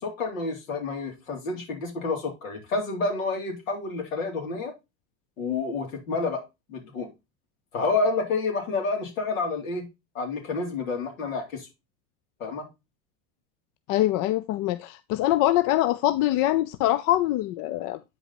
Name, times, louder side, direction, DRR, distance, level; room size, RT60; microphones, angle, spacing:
voice 1, 0.0-4.7 5.4-6.4 6.7-7.1 7.7-9.8 10.1-11.7 12.4-12.7, left 3 dB, 85° left, 3.8 m, -29 dB
voice 2, 13.9-18.0, left 15 dB, 55° left, 0.7 m, -24 dB
8.9 x 5.2 x 4.2 m
hypercardioid pair, 85°, 39 cm